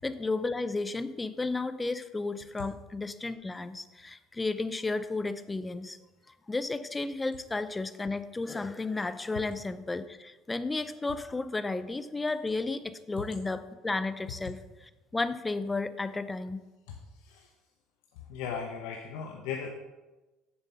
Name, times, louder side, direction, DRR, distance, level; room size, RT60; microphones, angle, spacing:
voice 1, 0.0-6.0 6.3-16.6, left 3 dB, 15° left, 13 dB, 0.6 m, -33 dB
voice 2, 18.3-19.7, left 6 dB, 80° left, 2 dB, 0.9 m, -37 dB
7.3 x 7.0 x 5.7 m, 1.2 s
supercardioid pair, 95°, 0 cm